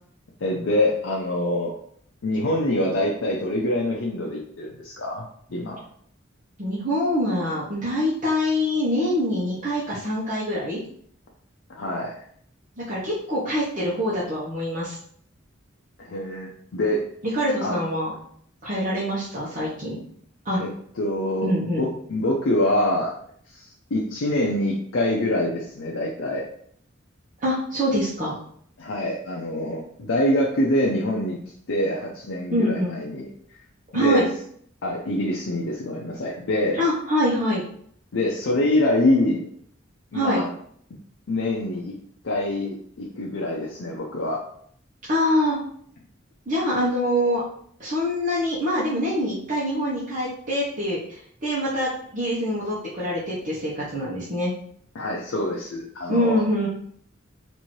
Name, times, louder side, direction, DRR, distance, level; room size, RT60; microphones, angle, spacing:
voice 1, 0.4-1.7 2.2-5.8 11.7-12.2 16.0-17.0 17.6-17.8 20.5-20.7 21.0-23.1 23.5-26.4 28.8-31.4 31.7-33.3 33.9-34.3 34.8-36.8 38.1-39.4 40.1-40.5 41.3-41.9 42.2-44.4 54.9-56.4, left 1 dB, 80° left, -2 dB, 0.6 m, -25 dB
voice 2, 6.6-10.8 12.8-15.0 17.3-18.1 18.6-20.0 20.4-20.6 21.4-21.9 27.4-28.4 32.5-32.9 33.9-34.2 36.8-37.6 40.1-40.4 45.1-45.6 46.5-47.4 47.8-51.0 51.4-54.5 56.1-56.7, equal, 40° right, -8 dB, 0.9 m, -24 dB
4.2 x 2.6 x 3.1 m, 0.63 s
head